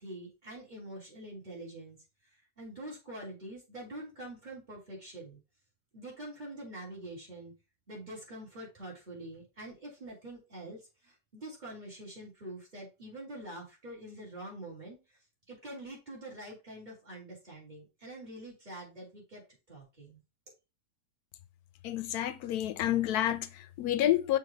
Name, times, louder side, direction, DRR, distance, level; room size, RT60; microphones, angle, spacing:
voice 1, 0.0-2.0 2.3-5.4 5.9-7.5 7.9-15.2 15.5-19.4 19.7-20.2, right 1 dB, 25° right, 3.4 m, -45 dB
voice 2, 21.8-24.4, left 12 dB, 75° left, 1.1 m, -29 dB
6.4 x 3.3 x 4.5 m
omnidirectional pair, 1.7 m